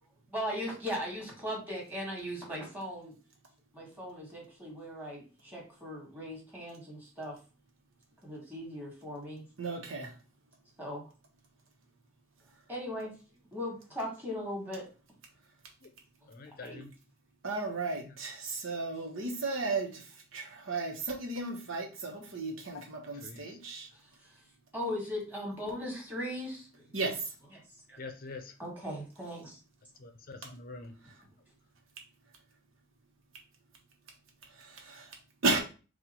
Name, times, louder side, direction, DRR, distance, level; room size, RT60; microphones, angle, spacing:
voice 1, 0.3-3.1 3.7-7.4 8.2-9.4 10.8-11.0 12.7-13.1 13.5-14.8 16.6-16.8 24.7-26.9 27.5-27.6 27.9-28.0 28.6-29.6, equal, 10° right, -3 dB, 1.6 m, -38 dB
voice 2, 9.6-10.1 17.4-23.9 26.9-27.3 34.6-35.2 35.4-35.6, right 3 dB, 85° right, 2 dB, 1.1 m, -34 dB
voice 3, 16.3-16.9 18.0-18.2 23.1-23.6 28.0-28.5 30.0-30.9, left 3 dB, 45° left, 7 dB, 0.6 m, -46 dB
4.3 x 2.4 x 4.2 m, 0.34 s
head